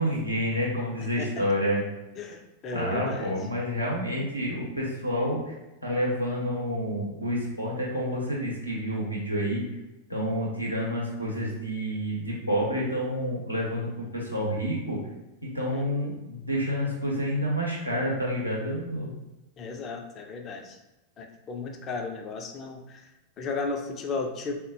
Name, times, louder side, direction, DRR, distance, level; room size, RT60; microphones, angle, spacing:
voice 1, 0.0-1.8 2.7-5.5 5.8-9.6 10.1-15.0 15.4-19.1, equal, 90° right, -4 dB, 0.8 m, -29 dB
voice 2, 2.2-3.3 15.7-16.2 19.6-20.8 21.2-23.0 23.4-24.6, left 4 dB, 30° left, 4 dB, 0.4 m, -34 dB
3.8 x 2.1 x 2.7 m, 0.98 s
figure-of-eight pair, 90°, 0 cm